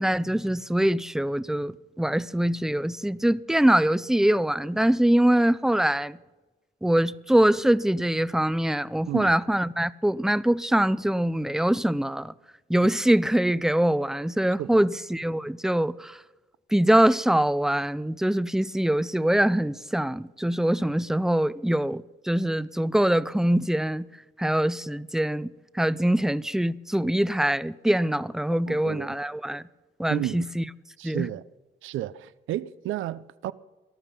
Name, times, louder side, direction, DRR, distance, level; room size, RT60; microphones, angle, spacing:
voice 1, 0.0-6.2 6.8-12.3 12.7-16.2 16.7-24.1 24.4-29.6 30.0-30.6 31.0-31.3, right 1 dB, ahead, 0.4 m, -23 dB
voice 2, 28.5-29.1 30.1-30.4 31.0-31.4 31.8-33.5, right 14 dB, 80° right, 0.6 m, -32 dB
19.0 x 12.0 x 5.5 m
cardioid pair, 90°, 20 cm